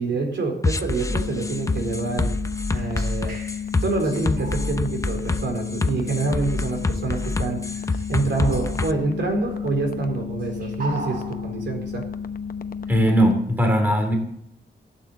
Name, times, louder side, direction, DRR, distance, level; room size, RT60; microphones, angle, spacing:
voice 1, 0.0-2.3 2.7-3.3 3.8-12.1, right 3 dB, 75° right, 3 dB, 4.2 m, -26 dB
sound 1, 0.6-8.9, left 3 dB, 15° left, 0.7 m, -26 dB
sound 2, 1.1-13.3, left 7 dB, 50° left, 0.8 m, -33 dB
sound 3, 2.7-3.8 4.0-5.0 5.9-6.1 7.1-7.5 7.9-9.8 10.4-11.7 12.2-12.4 12.8-13.1, right 2 dB, 50° right, 5.2 m, -40 dB
voice 2, 12.9-14.2, equal, 10° right, 4 dB, 2.7 m, -19 dB
16.0 x 9.0 x 8.0 m, 0.75 s
wide cardioid pair, 160°, 19 cm